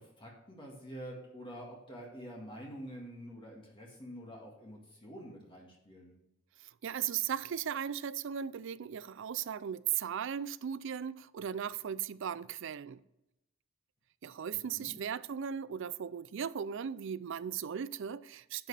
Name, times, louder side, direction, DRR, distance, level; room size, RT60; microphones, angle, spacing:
voice 1, 0.0-6.1 14.5-15.0, equal, 25° left, 1.9 m, -47 dB
voice 2, 6.6-13.0 14.2-18.7, right 8 dB, 65° right, 0.4 m, -37 dB
10.5 x 7.7 x 3.4 m
head